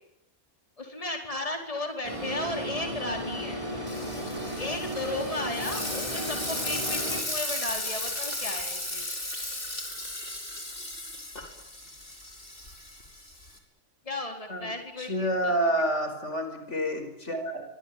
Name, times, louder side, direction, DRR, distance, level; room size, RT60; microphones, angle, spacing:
voice 1, 0.8-3.7 4.6-9.1 14.0-15.5, left 2 dB, 30° left, 3 dB, 4.7 m, -35 dB
sound 1, 2.0-7.2, equal, 25° right, 7.2 m, -35 dB
Frying (food), 3.9-13.6, left 1 dB, 45° left, 5.4 m, -35 dB
voice 2, 15.0-17.6, right 1 dB, 70° left, 7 dB, 5.6 m, -28 dB
25.5 x 25.0 x 9.4 m, 0.86 s
omnidirectional pair, 1.3 m